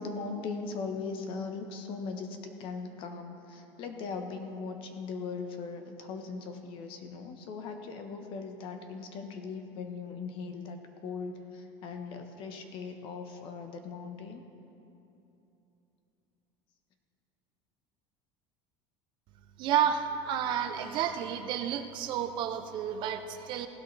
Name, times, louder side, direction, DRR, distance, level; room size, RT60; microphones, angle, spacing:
voice 1, 0.0-14.4, left 4 dB, 40° left, 6 dB, 1.0 m, -39 dB
voice 2, 19.6-23.7, right 9 dB, 40° right, 8 dB, 0.5 m, -31 dB
16.5 x 12.0 x 3.2 m, 2.9 s
cardioid pair, 175°, 13 cm